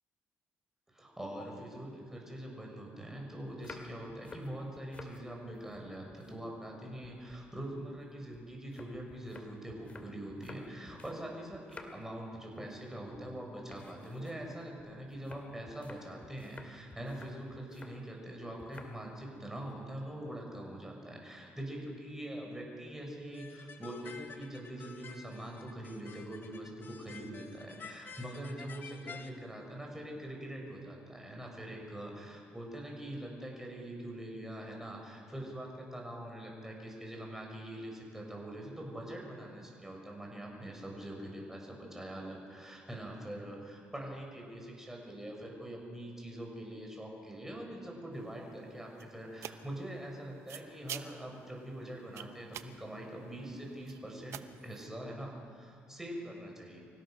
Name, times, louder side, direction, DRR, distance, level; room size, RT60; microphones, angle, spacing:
voice 1, 0.9-56.8, right 1 dB, 10° right, 0 dB, 6.1 m, -43 dB
sound 1, 3.5-5.2 5.5-6.7 7.0-11.2 11.5-12.2 12.5-12.9 13.1-13.3 13.7-18.0 18.6-19.0 19.3-19.7, left 3 dB, 25° left, 2.4 m, -53 dB
sound 2, 23.3-29.3, left 6 dB, 45° left, 1.6 m, -50 dB
sound 3, 48.1-54.9, right 10 dB, 75° right, 0.9 m, -50 dB
25.5 x 16.5 x 6.5 m, 2.3 s
cardioid pair, 95°, 5 cm